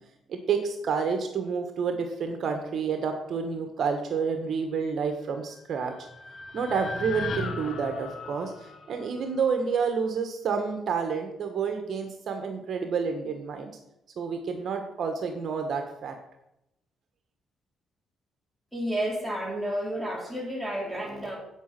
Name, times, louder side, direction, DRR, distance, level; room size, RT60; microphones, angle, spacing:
voice 1, 0.3-5.9 6.5-13.7 14.2-16.1, right 5 dB, 60° right, 5 dB, 1.5 m, -29 dB
sound 1, 5.5-9.8, left 4 dB, 55° left, 1.5 m, -38 dB
voice 2, 18.7-21.4, right 1 dB, ahead, -2 dB, 3.8 m, -31 dB
8.5 x 8.3 x 6.0 m, 0.85 s
cardioid pair, 90°, 0 cm